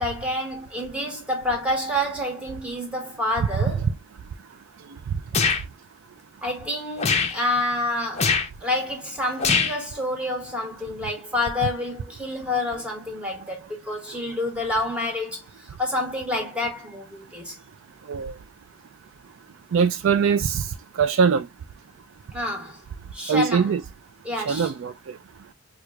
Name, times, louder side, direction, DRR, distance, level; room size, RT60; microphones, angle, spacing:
voice 1, 0.0-3.9 6.4-8.3 8.6-15.4 15.8-17.6 22.3-22.8 23.1-23.7 24.2-24.7, left 1 dB, 5° right, 1.3 m, -28 dB
sound 1, 5.3-5.6 7.0-7.4 8.1-8.5 9.4-9.8, left 5 dB, 30° left, 0.6 m, -22 dB
voice 2, 19.7-20.7 21.0-21.5 23.3-23.8 24.5-25.1, right 6 dB, 65° right, 0.3 m, -22 dB
4.6 x 2.4 x 2.2 m
head